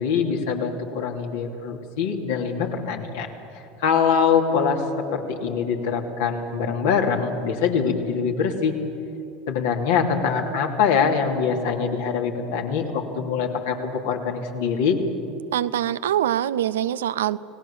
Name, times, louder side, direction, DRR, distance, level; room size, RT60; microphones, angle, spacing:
voice 1, 0.0-3.3 3.8-4.8 5.1-8.7 9.5-15.0, left 6 dB, 70° left, 2 dB, 2.8 m, -23 dB
voice 2, 15.5-17.4, right 11 dB, 75° right, 15 dB, 0.6 m, -24 dB
29.5 x 18.5 x 7.2 m, 2.8 s
figure-of-eight pair, 75°, 0 cm